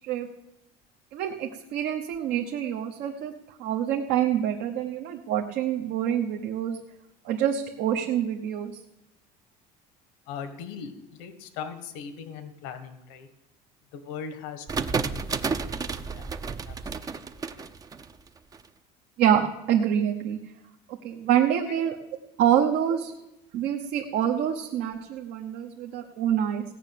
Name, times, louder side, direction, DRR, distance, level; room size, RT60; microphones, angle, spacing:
voice 1, 1.1-3.3 3.6-6.8 7.2-8.8 19.2-20.4 20.9-22.0 22.4-23.1 23.5-26.6, right 9 dB, 65° right, 2 dB, 1.1 m, -26 dB
voice 2, 10.3-13.3 13.9-15.9 16.1-16.4 16.6-17.1 17.4-17.5 21.7-21.9 22.9-23.0, left 7 dB, 85° left, 10 dB, 1.6 m, -40 dB
sound 1, 14.7-18.6, right 5 dB, 20° right, 0.6 m, -31 dB
16.5 x 5.7 x 9.2 m, 0.89 s
cardioid pair, 140°, 18 cm